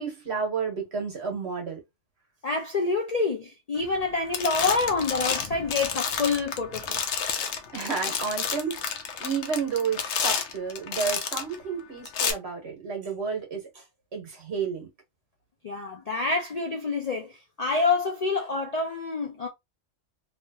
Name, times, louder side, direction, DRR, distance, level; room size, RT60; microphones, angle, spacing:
voice 1, 0.0-1.8 7.7-8.8 9.2-13.8 14.1-14.9, right 5 dB, 60° right, 1.4 m, -31 dB
voice 2, 2.4-7.0 15.6-19.5, left 4 dB, 50° left, 0.4 m, -27 dB
sound 1, 3.8-4.1 4.3-11.6 12.1-12.3, left 7 dB, 70° left, 0.9 m, -30 dB
3.1 x 2.3 x 2.7 m
omnidirectional pair, 1.2 m